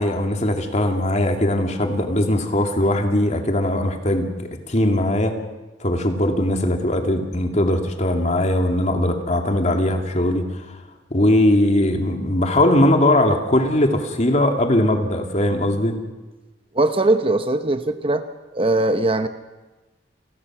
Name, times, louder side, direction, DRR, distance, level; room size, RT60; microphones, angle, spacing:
voice 1, 0.0-4.3 4.7-5.4 5.8-10.6 11.1-15.9, left 1 dB, 40° left, 4 dB, 2.5 m, -20 dB
voice 2, 16.7-18.2 18.5-19.3, right 2 dB, 30° right, 9 dB, 1.0 m, -20 dB
29.0 x 19.0 x 6.1 m, 1.2 s
head